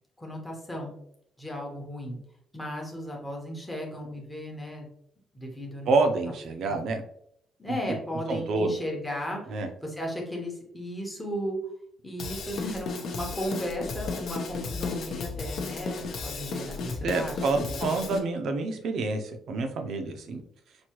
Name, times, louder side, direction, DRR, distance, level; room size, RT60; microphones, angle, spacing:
voice 1, 0.2-0.9 1.4-2.2 2.5-4.9 5.3-5.9 6.7-6.8 7.6-11.6 12.0-17.8, equal, 5° left, -1 dB, 1.0 m, -35 dB
voice 2, 5.9-7.0 7.7-7.8 8.3-8.7 9.5-9.7 17.0-20.4, right 3 dB, 55° right, 6 dB, 0.6 m, -27 dB
Drum kit / Drum, 12.2-18.2, left 4 dB, 50° left, 0.8 m, -34 dB
6.0 x 2.7 x 3.0 m, 0.72 s
cardioid pair, 180°, 0 cm